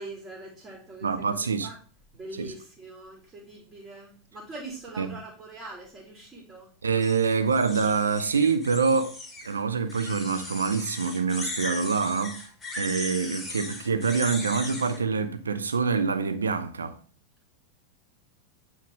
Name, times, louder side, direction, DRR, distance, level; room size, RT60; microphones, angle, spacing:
voice 1, 0.0-1.8 2.1-6.7, right 2 dB, 20° right, 2.6 m, -43 dB
voice 2, 1.0-1.7 2.4-2.5 5.0-5.2 6.8-9.2 9.4-12.4 12.8-17.0, right 5 dB, 70° right, 0.7 m, -26 dB
sound 1, 7.0-9.5 9.9-15.0, left 2 dB, 10° left, 2.0 m, -38 dB
9.0 x 3.8 x 3.6 m
figure-of-eight pair, 90°, 0 cm